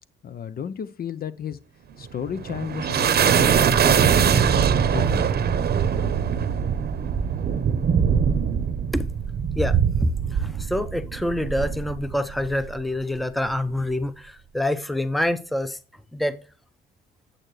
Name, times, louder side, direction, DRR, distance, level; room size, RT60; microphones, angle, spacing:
voice 1, 0.2-1.6 2.0-5.2, left 8 dB, 50° left, 0.6 m, -34 dB
sound 1, 2.0-12.8, right 7 dB, 55° right, 0.8 m, -22 dB
voice 2, 10.0-15.8 16.1-16.3, left 1 dB, ahead, 0.7 m, -26 dB
8.8 x 7.6 x 3.2 m
cardioid pair, 90°, 20 cm